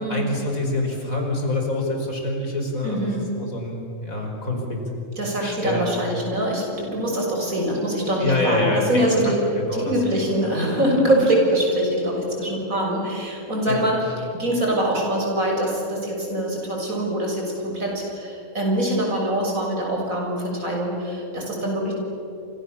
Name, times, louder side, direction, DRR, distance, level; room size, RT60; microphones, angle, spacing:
voice 1, 0.1-4.8 5.4-5.9 8.2-9.0 9.6-9.9 10.4-10.5 13.7-13.9, left 2 dB, 85° left, 1 dB, 5.6 m, -26 dB
voice 2, 2.8-3.3 5.2-9.4 9.7-21.9, right 1 dB, 80° right, -1 dB, 7.3 m, -24 dB
29.0 x 27.0 x 7.3 m, 2.9 s
omnidirectional pair, 1.4 m